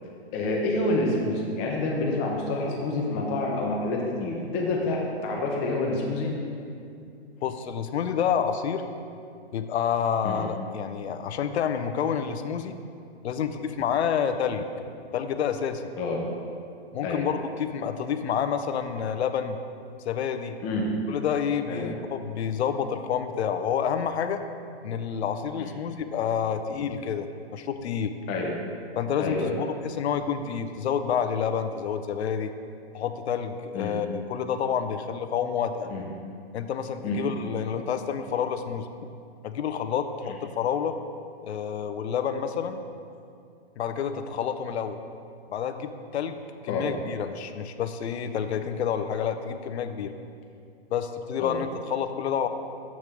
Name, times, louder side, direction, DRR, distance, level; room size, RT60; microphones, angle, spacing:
voice 1, 0.3-6.3 10.2-10.4 16.0-16.2 17.0-17.2 20.6-20.9 21.7-21.9 25.6-25.7 28.3-28.5 29.2-29.6 33.7-33.9 35.9-36.0 37.0-37.2 46.7-46.9 51.4-51.6, left 2 dB, 20° left, -1 dB, 0.6 m, -28 dB
voice 2, 7.4-8.9 9.5-12.8 13.2-14.6 15.1-15.8 16.9-19.6 20.1-20.6 21.1-24.4 24.8-28.1 29.0-32.5 32.9-35.9 36.5-38.9 39.4-41.0 41.4-42.8 43.8-45.0 45.5-50.1 50.9-52.5, left 7 dB, 80° left, 8 dB, 0.5 m, -29 dB
7.2 x 3.1 x 5.1 m, 2.4 s
hypercardioid pair, 150°, 32 cm